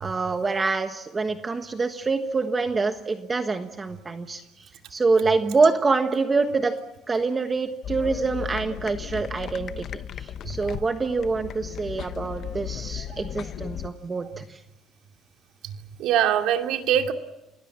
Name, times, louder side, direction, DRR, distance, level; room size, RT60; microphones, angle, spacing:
voice 1, 0.0-4.4 4.9-14.6, right 4 dB, 25° right, 7 dB, 1.4 m, -26 dB
sound 1, 7.8-13.9, left 10 dB, 55° left, 0.9 m, -36 dB
voice 2, 10.4-10.8 13.1-13.2 15.6-17.1, right 10 dB, 75° right, 5 dB, 2.6 m, -24 dB
29.0 x 20.0 x 7.3 m, 0.95 s
cardioid pair, 130°, 0 cm